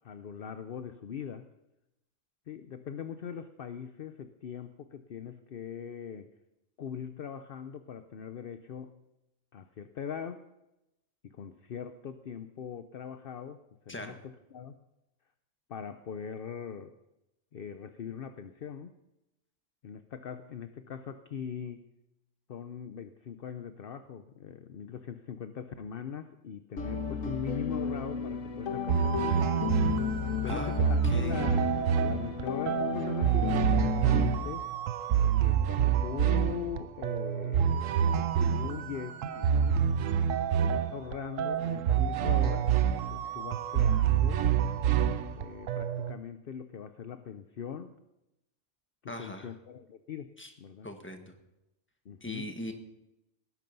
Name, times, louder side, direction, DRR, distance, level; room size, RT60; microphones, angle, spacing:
voice 1, 0.0-1.5 2.5-6.3 6.8-8.9 9.5-10.4 11.2-14.8 15.7-16.9 17.5-18.9 19.8-21.9 22.5-30.1 30.3-34.6 35.4-39.9 40.6-42.7 43.1-44.4 45.3-47.9 49.0-50.9 52.0-52.5, left 7 dB, 50° left, 10 dB, 0.8 m, -41 dB
voice 2, 13.9-14.2 30.4-31.4 49.1-49.5 50.4-50.5 50.8-51.3 52.2-52.7, left 1 dB, 10° left, 5 dB, 1.6 m, -40 dB
sound 1, 26.8-34.4, left 6 dB, 85° left, 1.6 m, -33 dB
sound 2, 28.9-46.2, right 8 dB, 80° right, 1.1 m, -27 dB
19.0 x 11.0 x 5.4 m, 0.90 s
omnidirectional pair, 1.3 m